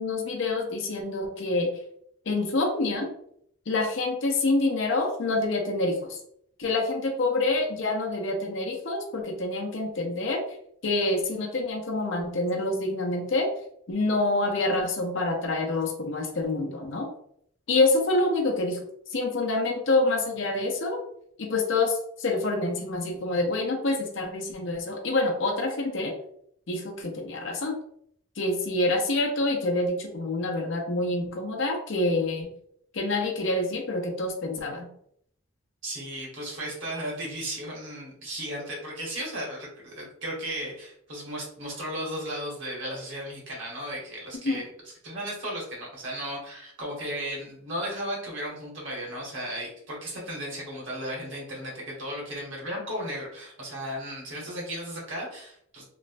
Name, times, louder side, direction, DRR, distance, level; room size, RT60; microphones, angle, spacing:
voice 1, 0.0-1.7 2.3-3.1 3.7-6.2 6.6-10.4 10.8-13.5 13.9-17.1 17.7-18.8 19.1-21.0 21.4-26.1 26.7-27.7 28.4-32.5 32.9-34.9 44.4-44.6, left 2 dB, 60° left, 1 dB, 0.6 m, -27 dB
voice 2, 35.8-44.7 45.0-55.9, equal, 55° right, -3 dB, 1.1 m, -35 dB
3.1 x 2.1 x 2.5 m, 0.68 s
head